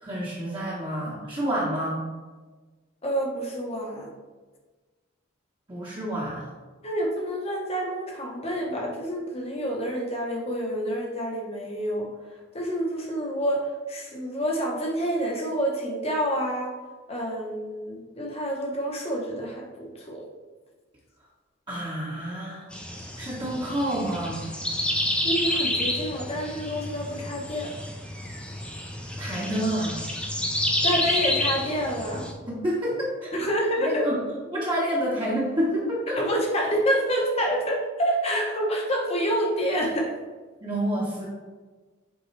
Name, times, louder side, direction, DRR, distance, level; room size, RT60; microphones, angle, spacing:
voice 1, 0.0-2.1 5.7-6.5 21.7-22.7 23.2-24.5 29.2-30.0 32.5-33.3 33.8-34.2 34.5-36.2 40.6-41.3, equal, 25° right, -7 dB, 1.2 m, -28 dB
voice 2, 3.0-4.1 6.8-12.1 12.5-16.7 17.1-20.2 25.2-27.7 30.8-32.3 33.3-34.1 36.1-40.1, equal, 30° left, -1 dB, 1.0 m, -28 dB
sound 1, 22.7-32.3, left 1 dB, 5° left, 0.6 m, -29 dB
8.0 x 3.8 x 3.3 m, 1.4 s
head